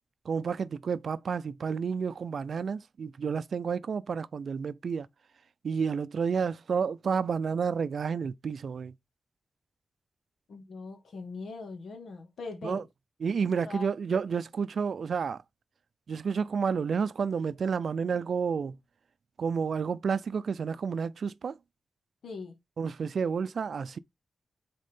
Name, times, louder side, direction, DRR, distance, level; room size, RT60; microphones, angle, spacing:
voice 1, 0.2-5.1 5.6-8.9 12.6-12.8 13.2-15.4 16.1-18.8 19.4-21.6 22.8-24.0, right 6 dB, 70° right, 0.4 m, -30 dB
voice 2, 10.5-12.9 13.6-13.9 22.2-22.6, left 3 dB, 90° left, 2.0 m, -41 dB
6.6 x 4.3 x 3.6 m
wide cardioid pair, 130°, 0 cm